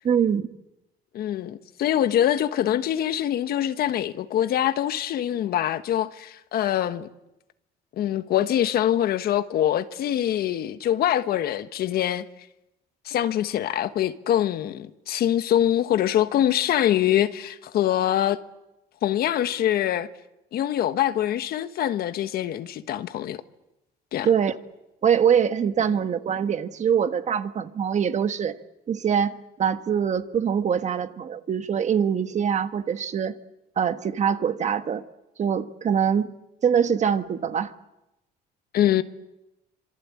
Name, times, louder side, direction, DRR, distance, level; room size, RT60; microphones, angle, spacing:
voice 1, 0.0-0.5 24.2-24.5 25.0-28.6 28.9-33.4 33.8-35.0 35.4-36.3 36.6-37.7, right 8 dB, 45° right, 1.4 m, -23 dB
voice 2, 1.1-7.1 8.0-12.2 13.0-18.4 19.0-20.1 20.5-23.4 24.1-24.3 38.7-39.0, left 11 dB, 65° left, 1.3 m, -24 dB
26.5 x 23.0 x 8.5 m
cardioid pair, 110°, 17 cm